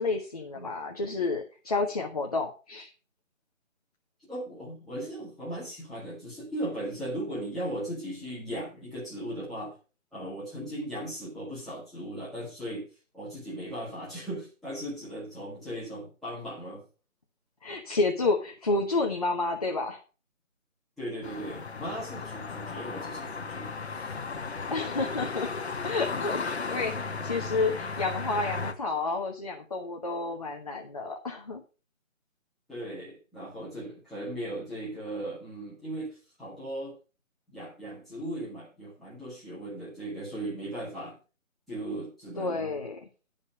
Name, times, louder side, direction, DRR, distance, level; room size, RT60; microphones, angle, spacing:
voice 1, 0.0-2.9 17.6-20.0 24.7-25.5 25.8-31.6 42.4-43.0, left 3 dB, 30° left, 1 dB, 0.9 m, -30 dB
voice 2, 4.3-9.7 10.1-12.9 13.1-16.8 21.0-24.1 27.7-27.9 32.7-36.9 37.5-41.2 41.7-42.8, right 1 dB, ahead, -12 dB, 1.8 m, -37 dB
sound 1, 21.2-28.7, left 4 dB, 50° left, 1.1 m, -35 dB
11.0 x 5.4 x 5.3 m, 0.33 s
figure-of-eight pair, 165°, 40 cm